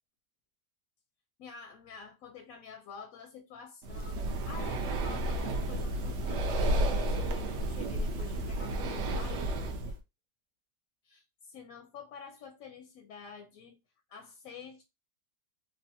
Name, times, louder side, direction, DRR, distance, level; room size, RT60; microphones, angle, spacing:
voice 1, 1.4-10.0 11.0-13.8 14.1-14.8, left 6 dB, 70° left, 0.8 m, -49 dB
Breathing, 3.8-10.0, right 1 dB, 85° right, 0.6 m, -32 dB
3.3 x 2.1 x 2.7 m
omnidirectional pair, 1.8 m